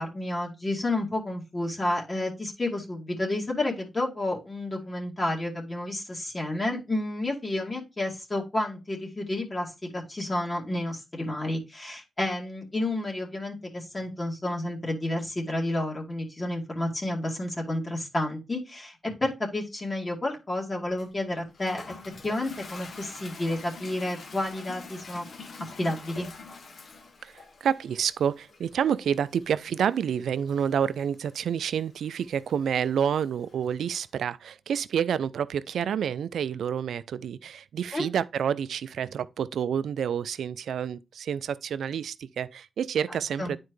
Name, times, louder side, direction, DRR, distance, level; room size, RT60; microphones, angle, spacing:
voice 1, 0.0-22.0 22.2-25.3 25.8-26.3 37.9-38.1 43.1-43.5, left 1 dB, 35° left, 2.2 m, -30 dB
Toilet flush, 21.0-33.8, left 4 dB, 65° left, 1.2 m, -47 dB
voice 2, 27.6-43.6, right 8 dB, 85° right, 0.4 m, -28 dB
9.6 x 4.5 x 3.1 m
cardioid pair, 50°, 0 cm